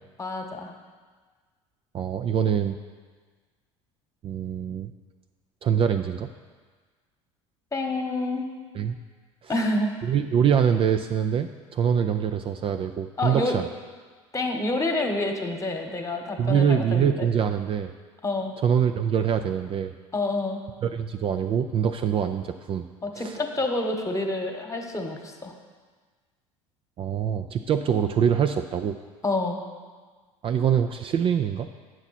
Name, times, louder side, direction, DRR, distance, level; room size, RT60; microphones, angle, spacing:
voice 1, 0.2-0.7 7.7-8.5 9.5-9.9 13.2-13.6 14.3-17.3 18.2-18.5 20.1-20.6 23.0-25.6 29.2-29.6, left 2 dB, 20° left, 3 dB, 1.2 m, -28 dB
voice 2, 1.9-2.8 4.2-4.9 5.6-6.3 8.7-9.0 9.4-9.5 10.0-13.7 16.4-17.9 18.6-19.9 20.8-22.9 23.2-23.4 27.0-29.0 30.4-31.7, right 8 dB, 35° right, 7 dB, 0.4 m, -24 dB
8.8 x 6.2 x 4.2 m, 1.5 s
hypercardioid pair, 75°, 16 cm